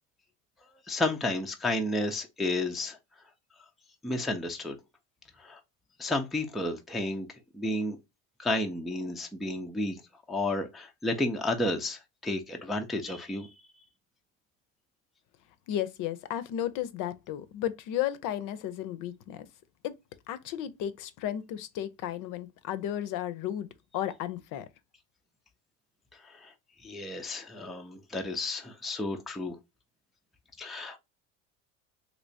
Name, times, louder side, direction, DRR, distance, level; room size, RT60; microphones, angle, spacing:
voice 1, 0.9-3.0 4.0-4.8 5.4-5.6 6.0-7.3 7.5-8.0 8.4-10.0 10.3-13.5 26.4-26.5 26.8-29.6 30.6-31.0, left 2 dB, ahead, 0.4 m, -31 dB
voice 2, 15.7-19.5 19.8-20.0 20.3-23.7 23.9-24.7, left 11 dB, 55° left, 0.6 m, -34 dB
3.2 x 2.9 x 2.6 m
supercardioid pair, 110°, 37 cm